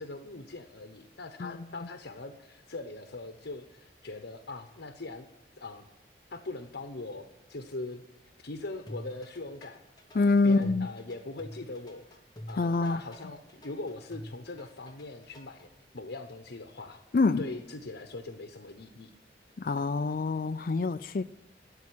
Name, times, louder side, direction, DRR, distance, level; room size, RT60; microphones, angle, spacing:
voice 1, 0.0-5.3 5.6-5.9 6.3-8.0 8.4-9.9 10.1-12.1 12.5-15.7 15.9-17.0 17.4-19.1, left 2 dB, 85° left, 6 dB, 1.0 m, -41 dB
sound 1, 8.9-15.7, equal, 25° left, 1.2 m, -46 dB
voice 2, 10.1-10.9 12.6-13.0 17.1-17.4 19.6-21.2, left 3 dB, 50° left, 9 dB, 0.4 m, -26 dB
13.0 x 8.5 x 9.9 m, 0.96 s
head